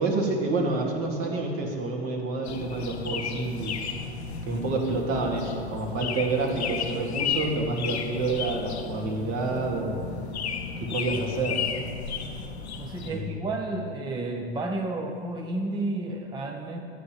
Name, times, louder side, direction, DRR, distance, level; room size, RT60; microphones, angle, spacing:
voice 1, 0.0-3.7 4.4-10.0 10.8-11.7 13.0-13.3, right 3 dB, 45° right, 0 dB, 1.8 m, -28 dB
sound 1, 2.4-13.1, left 6 dB, 90° left, 0.7 m, -33 dB
voice 2, 12.8-16.8, right 2 dB, 15° right, 2 dB, 0.6 m, -31 dB
12.5 x 8.6 x 2.9 m, 2.4 s
hypercardioid pair, 95°, 32 cm